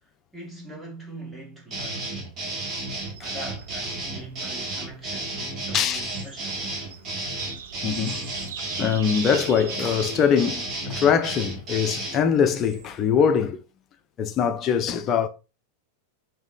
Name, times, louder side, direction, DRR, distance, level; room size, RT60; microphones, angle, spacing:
voice 1, 0.0-2.1 3.2-6.7, right 1 dB, 10° right, 0.9 m, -42 dB
sound 1, 1.7-12.2, right 2 dB, 30° right, 1.2 m, -33 dB
sound 2, 2.6-13.5, right 7 dB, 60° right, 0.4 m, -43 dB
voice 2, 7.8-8.2 8.8-13.6 14.2-15.3, left 7 dB, 30° left, 0.4 m, -23 dB
3.2 x 2.7 x 3.6 m
figure-of-eight pair, 90°, 0 cm